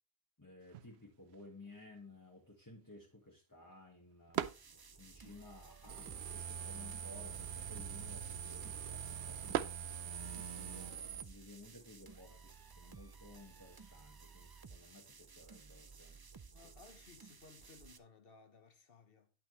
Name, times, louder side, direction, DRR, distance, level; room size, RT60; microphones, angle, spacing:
voice 1, 0.4-4.4 5.0-9.6 10.2-16.2, left 2 dB, 20° left, 1.5 m, -56 dB
sound 1, 0.6-10.6, right 11 dB, 90° right, 0.9 m, -47 dB
sound 2, 4.3-18.0, right 5 dB, 35° right, 0.4 m, -56 dB
sound 3, 5.9-11.2, right 8 dB, 60° right, 0.7 m, -44 dB
voice 2, 16.5-19.3, left 4 dB, 65° left, 1.4 m, -60 dB
10.5 x 5.8 x 3.1 m
omnidirectional pair, 1.0 m